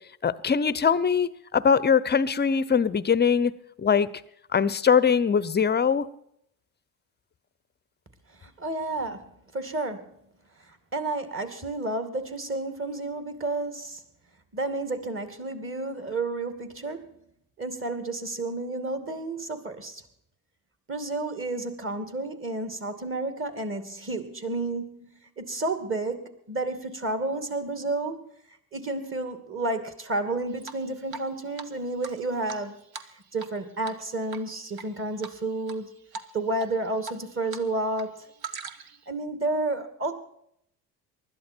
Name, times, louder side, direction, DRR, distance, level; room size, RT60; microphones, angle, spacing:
voice 1, 0.2-1.3 1.5-3.5 3.8-4.1 4.5-6.1, left 6 dB, 20° left, 0.7 m, -22 dB
voice 2, 8.4-10.1 10.9-14.0 14.5-17.1 17.6-20.0 20.9-28.2 28.7-32.8 33.3-35.9 36.3-38.3 39.1-40.2, right 2 dB, 25° right, 2.5 m, -31 dB
Drip, 30.6-31.3 31.6-31.7 32.0-33.6 33.8-34.0 34.3-34.9 35.2-35.8 36.1-36.3 36.6-37.6 37.9-39.0, right 5 dB, 50° right, 1.4 m, -40 dB
20.0 x 12.5 x 4.5 m
hypercardioid pair, 70°, 46 cm